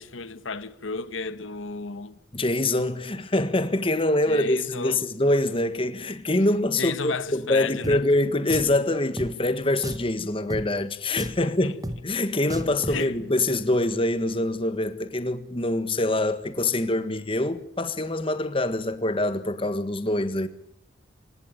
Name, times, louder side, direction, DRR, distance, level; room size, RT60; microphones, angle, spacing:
voice 1, 0.0-2.2 4.3-5.0 6.8-8.0 11.4-11.7 12.6-13.2, left 4 dB, 90° left, 1.2 m, -33 dB
voice 2, 2.3-11.8 12.0-20.5, left 1 dB, 30° left, 1.6 m, -25 dB
Drum, 7.8-8.0 8.5-8.8 9.2-9.3 9.8-10.1 10.5-10.6 11.2-11.4 11.8-12.0 12.5-13.0, equal, 20° right, 1.4 m, -32 dB
27.5 x 17.0 x 9.1 m
head